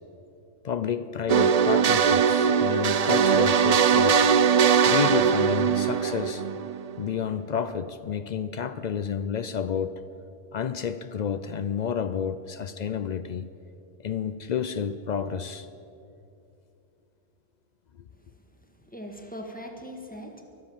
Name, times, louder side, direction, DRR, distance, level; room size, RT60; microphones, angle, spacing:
voice 1, 0.6-4.3 4.9-6.4 7.0-10.0 10.5-13.5 14.0-15.7, left 7 dB, 70° left, 13 dB, 0.4 m, -30 dB
sound 1, 1.3-7.0, right 7 dB, 85° right, 0.3 m, -21 dB
voice 2, 18.8-20.4, equal, 5° left, 2 dB, 1.5 m, -40 dB
23.0 x 7.8 x 7.2 m, 2.7 s
omnidirectional pair, 1.3 m